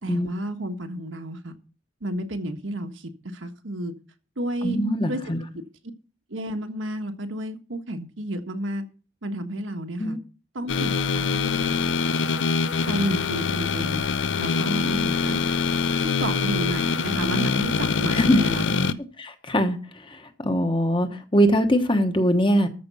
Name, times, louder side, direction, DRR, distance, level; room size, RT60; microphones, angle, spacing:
voice 1, 0.0-1.6 2.0-3.9 4.4-4.8 5.1-5.2 6.3-8.8 9.2-10.2 10.5-12.5 12.9-14.0 14.4-15.4 16.0-19.0, right 1 dB, 75° right, 1.4 m, -31 dB
voice 2, 4.6-5.4 10.0-10.2 18.1-18.4 19.2-19.8 20.1-22.7, equal, 25° left, 1.2 m, -22 dB
sound 1, 10.7-18.9, left 5 dB, 65° left, 0.6 m, -24 dB
13.5 x 5.2 x 6.9 m
head